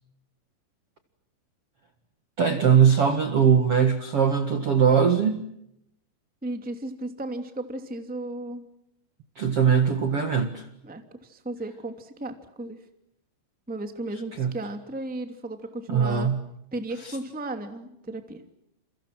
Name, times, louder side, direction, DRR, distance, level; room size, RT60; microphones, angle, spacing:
voice 1, 2.4-5.4 9.3-10.7 14.4-14.5 15.9-16.4 17.0-17.2, right 7 dB, 85° right, 8 dB, 1.3 m, -21 dB
voice 2, 6.4-8.6 10.8-12.8 13.7-16.3 16.7-18.4, right 2 dB, 5° right, 7 dB, 0.8 m, -35 dB
30.0 x 29.5 x 6.1 m, 0.76 s
omnidirectional pair, 5.7 m